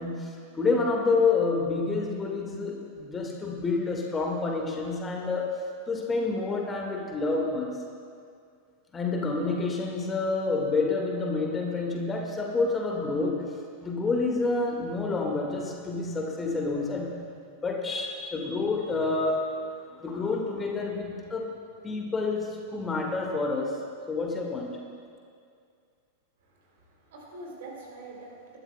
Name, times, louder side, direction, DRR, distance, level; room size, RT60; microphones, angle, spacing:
voice 1, 0.0-5.5 5.9-7.8 8.9-13.4 13.8-17.3 17.6-19.4 19.7-21.4 21.8-23.7 24.1-24.8, left 3 dB, 15° left, 0 dB, 1.7 m, -28 dB
voice 2, 26.4-28.6, right 2 dB, 55° right, -1 dB, 3.0 m, -45 dB
21.0 x 12.5 x 2.2 m, 2.2 s
figure-of-eight pair, 90°, 0 cm